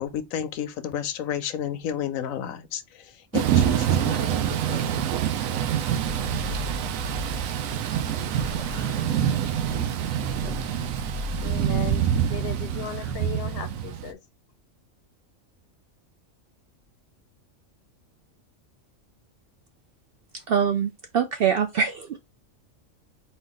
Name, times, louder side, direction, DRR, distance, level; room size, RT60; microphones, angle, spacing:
voice 1, 0.0-5.2, left 9 dB, 85° left, 1.0 m, -32 dB
Thunder / Rain, 3.3-14.1, right 10 dB, 85° right, 1.0 m, -26 dB
sound 1, 6.0-13.1, left 2 dB, 30° right, 1.7 m, -37 dB
voice 2, 11.4-14.2, left 6 dB, 55° left, 0.7 m, -37 dB
voice 3, 20.5-22.2, right 7 dB, 65° right, 0.6 m, -24 dB
4.3 x 2.4 x 3.8 m
omnidirectional pair, 1.4 m